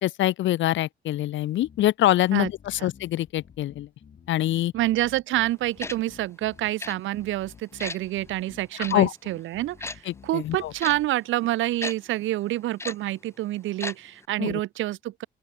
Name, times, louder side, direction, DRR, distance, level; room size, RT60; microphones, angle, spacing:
voice 1, 0.0-3.9 4.3-4.7 8.8-9.1 10.1-10.7 14.4-14.6, left 14 dB, 70° left, 0.7 m, -24 dB
sound 1, 1.6-11.1, left 7 dB, 45° left, 2.2 m, -51 dB
voice 2, 4.7-15.3, right 15 dB, 75° right, 0.6 m, -28 dB
Tick-tock, 5.8-6.0 6.8-6.9 7.8-8.0 8.8-8.9 9.8-10.0 10.8-10.9 11.8-11.9 12.8-12.9 13.8-13.9 14.2-14.3, left 2 dB, 15° left, 0.7 m, -33 dB
open air
cardioid pair, 90°, 20 cm